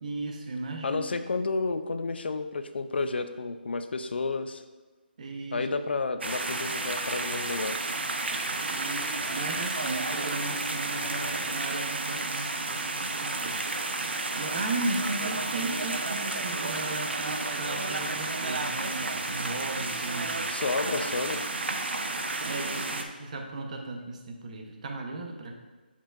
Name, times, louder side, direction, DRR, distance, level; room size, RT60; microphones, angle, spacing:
voice 1, 0.0-1.0 5.2-5.6 8.7-13.6 14.3-20.5 22.4-25.5, right 2 dB, 40° right, 2 dB, 0.9 m, -36 dB
voice 2, 0.8-4.6 5.5-7.8 20.5-21.5, left 3 dB, 75° left, 10 dB, 0.5 m, -31 dB
sound 1, 6.2-23.0, right 3 dB, 85° right, 0.7 m, -31 dB
7.4 x 5.5 x 2.5 m, 1.3 s
hypercardioid pair, 165°, 6 cm